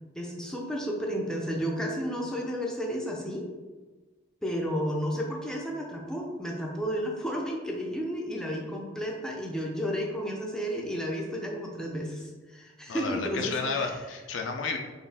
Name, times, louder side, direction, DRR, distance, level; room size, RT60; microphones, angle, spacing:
voice 1, 0.1-3.4 4.4-14.0, equal, 5° left, -2 dB, 0.5 m, -32 dB
voice 2, 12.9-14.8, left 4 dB, 65° left, 4 dB, 0.5 m, -31 dB
4.4 x 3.1 x 3.4 m, 1.3 s
head